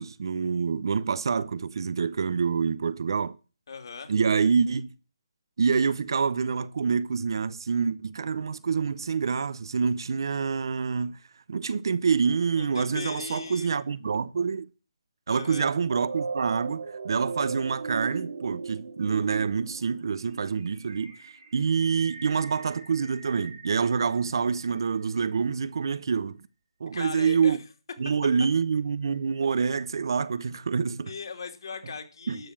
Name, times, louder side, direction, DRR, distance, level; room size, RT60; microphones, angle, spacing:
voice 1, 0.0-3.4 4.1-4.9 5.6-11.2 11.5-14.7 15.3-21.2 21.5-26.4 26.8-27.6 28.0-31.1 32.3-32.4, right 5 dB, 50° right, 0.7 m, -26 dB
voice 2, 3.7-4.1 12.6-13.7 15.3-15.7 26.9-27.6 31.1-32.5, left 5 dB, 55° left, 2.9 m, -38 dB
sound 1, 15.9-24.9, right 4 dB, 65° right, 3.0 m, -38 dB
12.5 x 7.0 x 7.5 m
hypercardioid pair, 170°, 3 cm